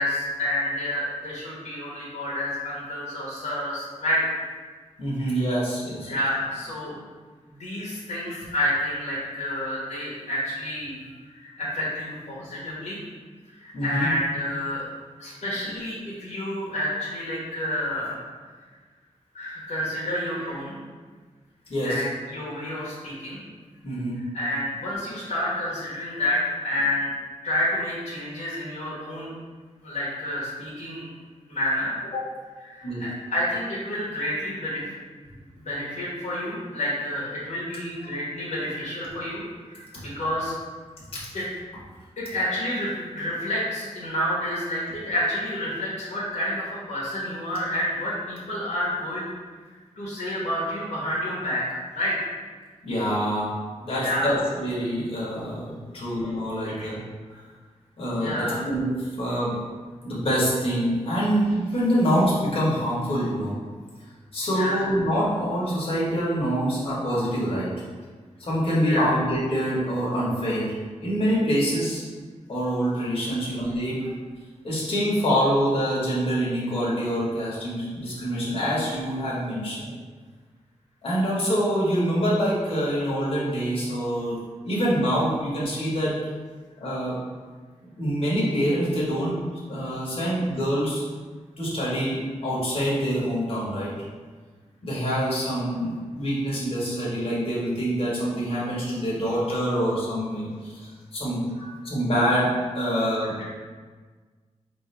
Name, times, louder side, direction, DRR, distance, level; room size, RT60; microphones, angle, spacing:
voice 1, 0.0-4.2 6.0-6.9 7.5-13.0 13.6-14.8 15.2-18.2 19.3-20.8 21.8-23.4 24.3-27.1 27.4-29.3 29.8-31.1 31.5-31.9 32.7-34.9 35.6-40.5 41.3-41.4 42.2-49.3 50.0-52.3 54.0-54.4 56.6-56.9 58.2-58.6 64.5-64.8 68.8-69.1 101.6-101.7 103.4-103.5, left 1 dB, 80° left, -8 dB, 1.3 m, -29 dB
voice 2, 5.0-6.1 13.7-14.1 21.7-22.0 23.8-24.2 32.1-32.2 32.8-33.0 41.1-41.4 52.8-53.5 53.8-57.0 57.3-57.4 58.0-59.6 60.0-63.6 64.3-67.7 68.4-70.7 71.0-72.0 72.5-74.0 74.6-79.9 81.0-84.4 84.6-86.1 86.8-87.1 88.0-89.4 89.7-91.0 91.6-93.9 94.8-100.7 101.1-101.4 101.8-103.3, equal, 50° left, -8 dB, 1.4 m, -25 dB
5.2 x 2.8 x 3.4 m, 1.5 s
wide cardioid pair, 120°, 12 cm